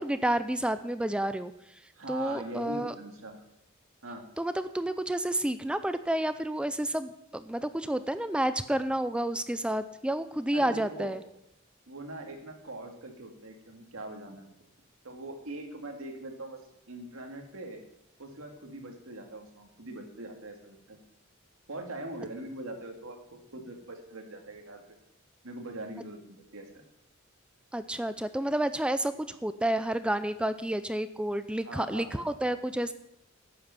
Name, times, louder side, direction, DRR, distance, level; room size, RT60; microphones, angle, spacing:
voice 1, 0.0-1.5 2.1-2.9 4.4-11.2 27.7-32.9, right 1 dB, 5° right, 12 dB, 0.4 m, -30 dB
voice 2, 1.9-3.4 4.0-4.2 10.5-11.1 11.9-14.5 15.0-17.8 18.2-21.0 21.7-23.2 23.5-24.8 25.4-26.8 31.6-32.5, right 2 dB, 80° right, 3 dB, 2.1 m, -42 dB
11.0 x 8.7 x 5.7 m, 0.81 s
head